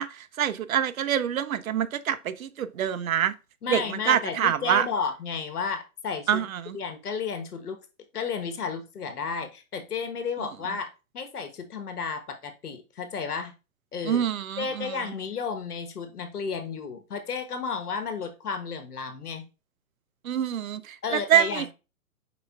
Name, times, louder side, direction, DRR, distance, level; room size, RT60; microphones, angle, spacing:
voice 1, 0.0-3.3 3.7-4.9 6.3-6.8 14.0-15.0 20.2-21.7, right 10 dB, 65° right, 0.5 m, -26 dB
voice 2, 3.6-6.5 6.7-7.8 8.1-13.5 13.9-14.2 14.6-19.4 21.0-21.7, left 5 dB, 85° left, 1.2 m, -32 dB
4.9 x 4.2 x 2.3 m
hypercardioid pair, 165°, 45 cm